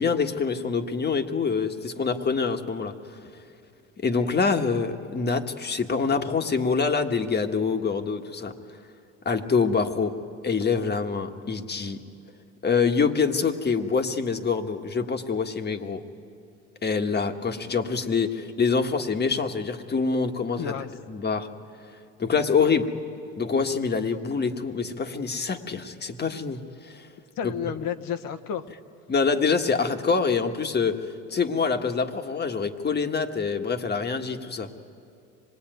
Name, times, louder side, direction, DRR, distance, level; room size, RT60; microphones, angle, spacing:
voice 1, 0.0-2.9 4.0-8.5 9.2-10.1 10.4-12.0 12.6-16.0 16.8-20.7 21.1-21.5 22.2-22.9 23.4-27.1 27.4-27.5 29.1-34.7, left 5 dB, 25° left, 6 dB, 1.6 m, -25 dB
voice 2, 20.6-20.9 27.4-28.6, left 8 dB, 60° left, 8 dB, 1.4 m, -31 dB
25.5 x 20.5 x 9.2 m, 2.4 s
supercardioid pair, 95°, 37 cm